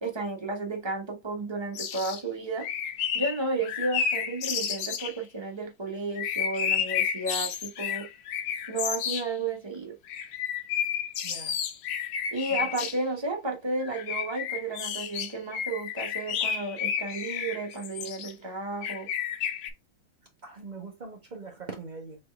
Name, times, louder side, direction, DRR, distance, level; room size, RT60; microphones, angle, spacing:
voice 1, 0.0-2.7 3.1-8.1 8.7-9.9 12.3-19.1, right 2 dB, 20° right, 0.7 m, -32 dB
sound 1, 1.7-2.2 2.6-5.2 6.2-9.3 10.1-13.0 13.8-18.3 18.8-19.7, left 8 dB, 70° left, 1.3 m, -31 dB
voice 2, 11.2-11.6 12.5-12.7 20.4-22.2, right 4 dB, 65° right, 0.4 m, -42 dB
4.3 x 3.3 x 3.2 m
omnidirectional pair, 2.3 m